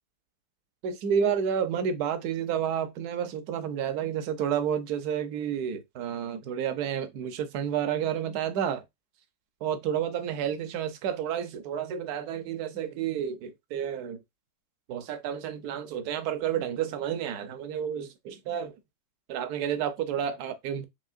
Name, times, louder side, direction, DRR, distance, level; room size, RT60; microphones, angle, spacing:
voice 1, 0.8-8.8 9.6-14.2 14.9-18.7 19.3-20.9, right 8 dB, 65° right, 1.2 m, -30 dB
5.6 x 2.9 x 2.4 m
omnidirectional pair, 1.9 m